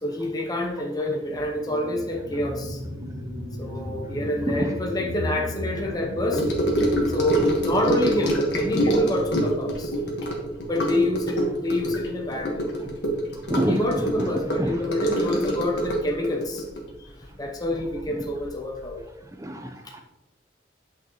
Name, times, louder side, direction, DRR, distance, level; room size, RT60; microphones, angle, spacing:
voice 1, 0.0-2.8 3.6-6.5 7.1-9.9 10.7-12.7 13.7-16.7 17.0-19.0 19.8-20.0, left 1 dB, 20° left, 1 dB, 0.7 m, -27 dB
sound 1, 1.2-10.2 10.7-10.8, left 1 dB, 65° right, 1.9 m, -36 dB
Gurgling / Sink (filling or washing) / Trickle dribble, 6.3-18.0 18.2-18.6 18.8-18.9, right 1 dB, 70° left, 1.5 m, -26 dB
voice 2, 13.4-14.3 14.6-14.8 19.4-20.0, equal, 15° right, 4 dB, 0.7 m, -27 dB
8.5 x 6.0 x 3.1 m, 0.99 s
head